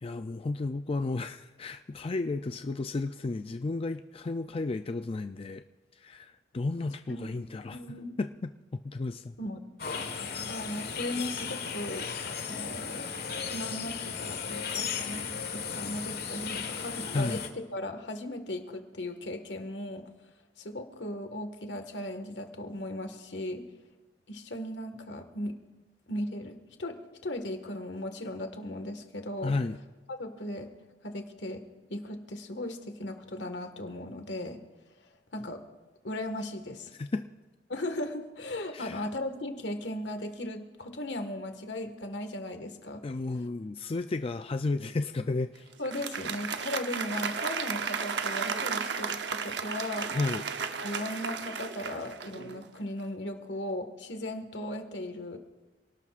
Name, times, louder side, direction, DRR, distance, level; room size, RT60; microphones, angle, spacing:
voice 1, 0.0-5.6 5.9-7.8 8.2-9.3 17.1-17.4 29.4-29.8 37.0-37.2 38.7-39.1 43.0-45.7 50.1-50.4, left 3 dB, 35° left, 8 dB, 0.4 m, -33 dB
voice 2, 7.7-8.1 9.4-9.7 10.0-10.1 10.5-13.1 13.4-17.4 17.7-20.1 20.6-23.7 24.3-25.6 26.1-29.5 30.1-30.7 31.0-31.6 31.9-34.6 35.3-35.6 36.0-36.9 37.7-43.0 45.8-50.1 50.8-55.4, left 1 dB, 80° left, 6 dB, 1.7 m, -37 dB
serenbe-spring-fields-ambiance, 9.8-17.5, left 6 dB, 60° left, 1.5 m, -35 dB
Applause, 45.7-52.7, right 6 dB, 70° right, 0.9 m, -34 dB
28.0 x 18.5 x 2.5 m, 1.3 s
head